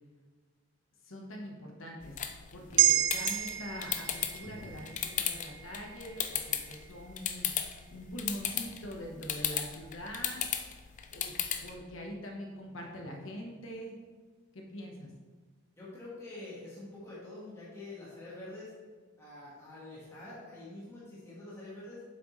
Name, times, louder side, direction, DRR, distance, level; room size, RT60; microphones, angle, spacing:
voice 1, 1.0-2.1 2.5-7.5 7.9-10.4 11.1-11.3 11.6-14.0 14.5-15.1, equal, 75° left, 0 dB, 1.2 m, -43 dB
sound 1, 2.0-11.8, left 9 dB, 35° left, 0.5 m, -37 dB
sound 2, 2.8-7.3 7.7-7.8, right 13 dB, 55° right, 0.3 m, -32 dB
voice 2, 15.8-18.7 19.2-22.0, left 2 dB, 15° left, -9 dB, 1.7 m, -46 dB
7.7 x 6.4 x 3.2 m, 1.4 s
head